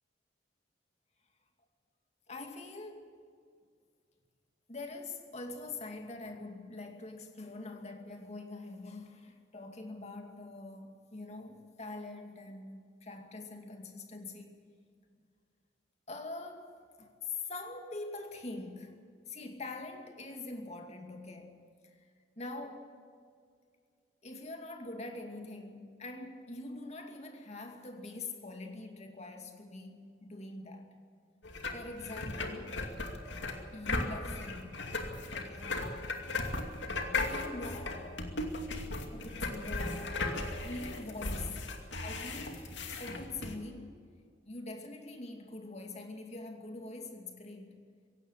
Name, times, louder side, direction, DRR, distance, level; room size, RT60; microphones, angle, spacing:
voice 1, 2.3-3.2 4.7-14.6 16.1-19.0 19.3-22.1 22.4-22.9 24.2-31.0 31.7-32.8 33.7-34.9 35.3-35.8 37.1-38.1 39.1-40.3 40.6-41.7 42.0-44.1 44.4-47.8, left 2 dB, 40° left, 2.4 m, -44 dB
sound 1, 31.4-43.6, left 2 dB, 85° left, 2.4 m, -37 dB
16.5 x 16.5 x 9.9 m
head